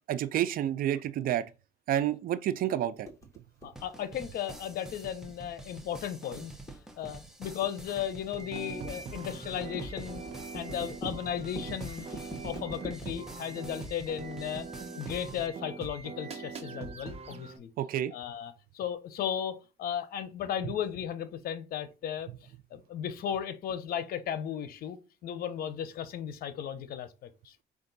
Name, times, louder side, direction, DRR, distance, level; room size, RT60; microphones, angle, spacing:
voice 1, 0.1-1.4 1.9-3.1 17.8-18.1, right 11 dB, 60° right, 0.4 m, -29 dB
sound 1, 3.0-14.6, right 1 dB, 20° left, 1.3 m, -45 dB
voice 2, 3.6-6.5 7.0-10.2 10.5-14.7 14.9-17.7 18.1-22.3 22.7-27.5, left 9 dB, 65° left, 0.7 m, -36 dB
sound 2, 3.8-15.5, right 2 dB, 5° right, 0.8 m, -48 dB
sound 3, 8.4-17.6, right 4 dB, 35° right, 0.9 m, -42 dB
5.1 x 2.5 x 3.9 m
cardioid pair, 110°, 17 cm